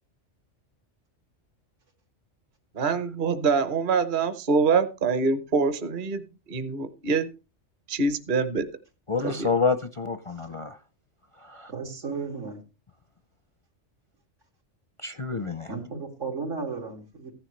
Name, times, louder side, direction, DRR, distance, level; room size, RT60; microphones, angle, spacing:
voice 1, 2.7-6.2 6.5-7.3 7.9-8.7 9.2-9.5, right 4 dB, 45° right, 11 dB, 1.0 m, -25 dB
voice 2, 9.1-10.8 11.4-11.7 15.0-15.7, left 4 dB, 40° left, 10 dB, 0.5 m, -28 dB
voice 3, 11.7-12.6 15.7-17.3, right 4 dB, 80° right, 1 dB, 3.0 m, -34 dB
15.0 x 10.5 x 3.2 m, 0.30 s
omnidirectional pair, 1.3 m